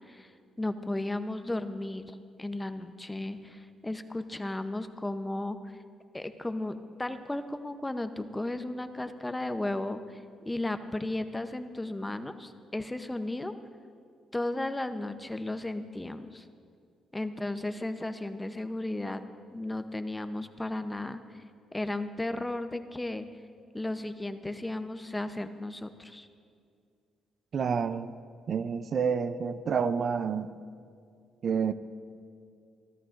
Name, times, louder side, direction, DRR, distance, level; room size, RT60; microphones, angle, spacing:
voice 1, 0.6-5.6 6.1-13.6 14.3-16.5 17.1-19.2 19.5-21.4 21.7-23.3 23.7-26.3, left 2 dB, 10° left, 9 dB, 0.7 m, -35 dB
voice 2, 27.5-28.1 28.5-30.5 31.4-31.7, right 6 dB, 55° right, 12 dB, 0.5 m, -29 dB
27.5 x 12.5 x 2.6 m, 2.3 s
cardioid pair, 90°, 0 cm